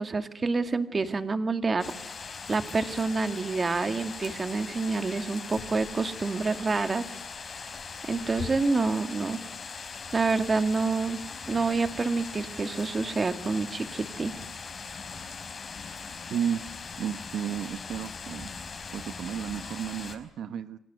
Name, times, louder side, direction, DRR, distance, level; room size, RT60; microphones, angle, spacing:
voice 1, 0.0-1.9 2.5-7.1 8.1-9.4 10.1-11.2 11.5-14.3, right 3 dB, 25° right, 9 dB, 2.2 m, -27 dB
sound 1, 1.8-3.1 5.0-6.2 6.7-6.9 7.3-8.7, left 6 dB, 55° left, 5.3 m, -45 dB
sound 2, 1.8-20.2, left 5 dB, 30° left, 4.6 m, -40 dB
voice 2, 16.3-16.6 17.0-18.5 18.9-20.8, right 8 dB, 65° right, 12 dB, 1.2 m, -32 dB
30.0 x 24.5 x 8.1 m, 0.74 s
cardioid pair, 145°, 0 cm